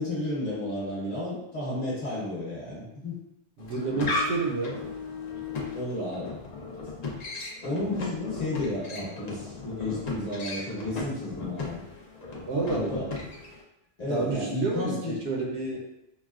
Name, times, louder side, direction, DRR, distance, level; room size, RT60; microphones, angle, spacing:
voice 1, 0.0-3.1 5.7-6.3 7.6-11.8 12.7-13.1 14.0-15.2, left 1 dB, 35° left, -7 dB, 1.1 m, -32 dB
sound 1, 3.6-13.6, left 3 dB, 55° left, 0.5 m, -35 dB
voice 2, 3.6-4.8 12.5-13.1 14.1-15.8, right 3 dB, 70° right, -2 dB, 0.8 m, -29 dB
3.9 x 2.1 x 2.3 m, 0.87 s
omnidirectional pair, 1.2 m